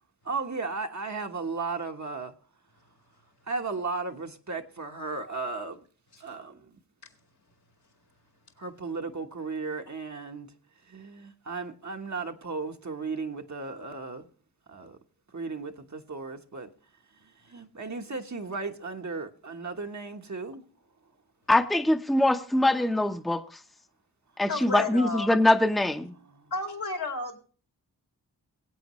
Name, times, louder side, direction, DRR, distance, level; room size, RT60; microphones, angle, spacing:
voice 1, 0.2-2.3 3.4-5.8 6.2-6.8 8.6-10.5 10.8-14.3 14.7-15.0 15.3-16.7 17.1-20.6 24.5-24.8, right 4 dB, 45° right, 1.2 m, -35 dB
voice 2, 21.5-23.4 24.4-26.1, left 1 dB, ahead, 0.8 m, -23 dB
voice 3, 24.5-25.3 26.5-27.4, left 3 dB, 70° left, 2.5 m, -32 dB
21.0 x 8.5 x 3.1 m
cardioid pair, 55°, 40 cm